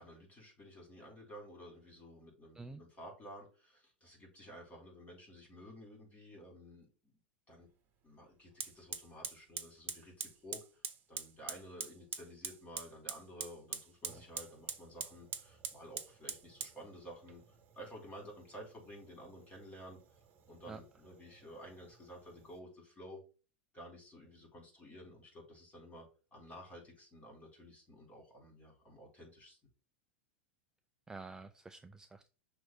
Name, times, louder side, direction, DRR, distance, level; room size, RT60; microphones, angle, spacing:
voice 1, 0.0-7.1 7.5-7.7 8.0-10.8 11.1-20.2 20.5-23.2 23.7-29.6, equal, 20° left, 1 dB, 4.1 m, -53 dB
Fire, 7.6-7.7 8.6-22.6, right 8 dB, 35° right, 1.2 m, -46 dB
voice 2, 31.1-32.3, right 3 dB, 10° right, 9 dB, 0.4 m, -48 dB
6.2 x 3.3 x 6.0 m, 0.34 s
figure-of-eight pair, 90°, 6 cm